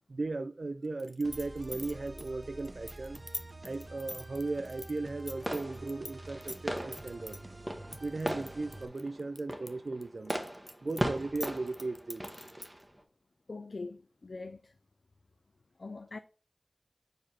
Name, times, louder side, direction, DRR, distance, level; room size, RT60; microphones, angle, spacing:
voice 1, 0.1-3.2 3.6-7.4 8.0-10.4 10.8-12.3, right 3 dB, 85° right, 0.3 m, -36 dB
sound 1, 1.0-6.1 6.4-7.4 7.9-9.7 10.0-12.8, left 1 dB, 20° left, 0.7 m, -44 dB
sound 2, 1.2-8.9, right 2 dB, 45° right, 0.8 m, -48 dB
sound 3, 5.3-13.0, equal, 15° right, 1.2 m, -39 dB
voice 2, 13.5-14.7 15.8-16.2, left 3 dB, 90° left, 0.3 m, -42 dB
4.9 x 4.3 x 5.5 m
wide cardioid pair, 45°, 0 cm